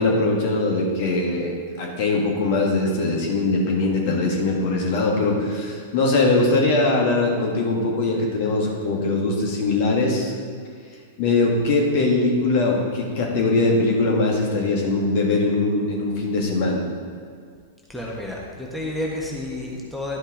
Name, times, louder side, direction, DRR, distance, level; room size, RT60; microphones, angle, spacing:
voice 1, 0.0-10.3 11.2-16.8, left 2 dB, 50° left, -1 dB, 1.9 m, -21 dB
voice 2, 17.9-20.2, left 1 dB, 5° left, -3 dB, 1.3 m, -30 dB
11.5 x 5.3 x 3.9 m, 2.1 s
figure-of-eight pair, 100°, 0 cm